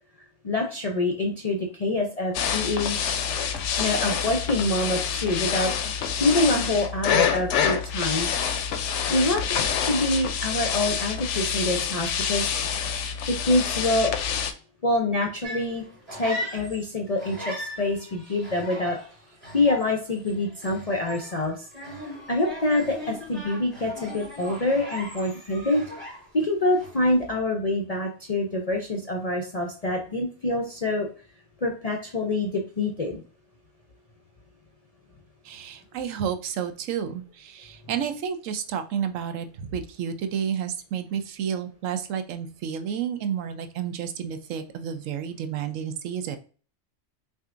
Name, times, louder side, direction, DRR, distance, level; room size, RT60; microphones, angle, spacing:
voice 1, 0.4-3.0 3.8-5.7 6.2-8.3 9.1-9.4 9.8-12.5 13.3-14.1 14.8-15.8 16.1-19.0 19.5-21.7 22.3-25.8 26.3-31.1 31.6-33.2, left 2 dB, 50° left, 1 dB, 0.5 m, -25 dB
sound 1, 2.3-14.5, left 7 dB, 70° left, 0.8 m, -27 dB
sound 2, 15.4-16.9 17.2-26.5 26.8-27.2, equal, 30° right, 2.3 m, -39 dB
voice 2, 35.4-46.4, right 8 dB, 80° right, 8 dB, 1.0 m, -31 dB
5.9 x 2.7 x 2.5 m, 0.39 s
omnidirectional pair, 1.3 m